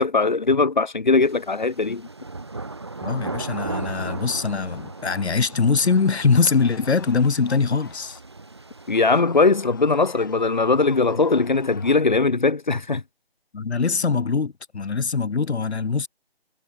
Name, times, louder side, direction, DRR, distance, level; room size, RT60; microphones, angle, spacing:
voice 1, 0.0-2.1 8.9-13.0, left 3 dB, 45° left, 1.4 m, -20 dB
sound 1, 1.2-9.2, right 3 dB, 25° right, 1.6 m, -36 dB
voice 2, 3.0-8.2 13.5-16.1, left 5 dB, 90° left, 1.2 m, -22 dB
sound 2, 4.7-8.2 8.8-11.9, left 6 dB, 20° left, 5.7 m, -46 dB
figure-of-eight pair, 180°, 32 cm